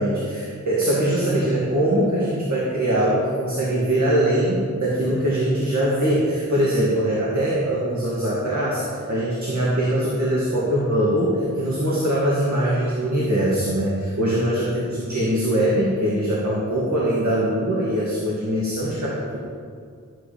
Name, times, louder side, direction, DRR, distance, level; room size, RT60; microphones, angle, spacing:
voice 1, 0.0-19.4, right 1 dB, 70° right, -6 dB, 2.2 m, -22 dB
12.5 x 8.2 x 5.1 m, 2.2 s
wide cardioid pair, 75°, 30 cm